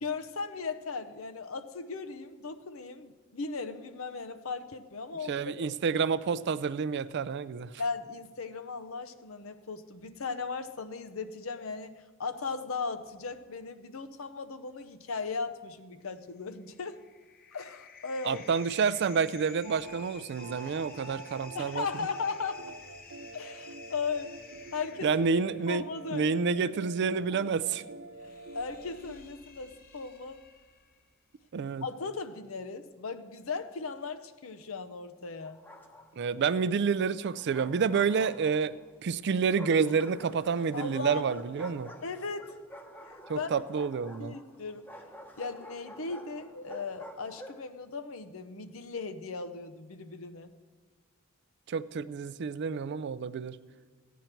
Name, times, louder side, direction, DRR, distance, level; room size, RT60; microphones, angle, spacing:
voice 1, 0.0-5.8 7.8-17.0 17.5-18.4 21.5-22.6 23.3-24.3 24.7-25.1 25.7-26.4 28.2-30.4 31.8-35.6 40.7-41.4 42.0-42.5 43.0-43.6 44.2-44.9 45.4-50.5, left 4 dB, 75° left, 9 dB, 0.7 m, -37 dB
voice 2, 5.3-7.8 18.2-21.9 25.0-27.8 31.5-31.9 36.2-38.8 39.0-41.9 43.3-44.4 51.7-53.6, right 5 dB, 55° right, 16 dB, 0.4 m, -29 dB
sound 1, 16.5-31.1, left 4 dB, 45° left, 1.0 m, -53 dB
sound 2, 19.6-20.1 20.4-29.2, right 3 dB, 75° right, 0.8 m, -47 dB
Bark, 35.4-36.3 37.2-38.8 39.5-47.7, equal, 10° left, 0.9 m, -49 dB
14.5 x 9.2 x 4.5 m, 1.5 s
head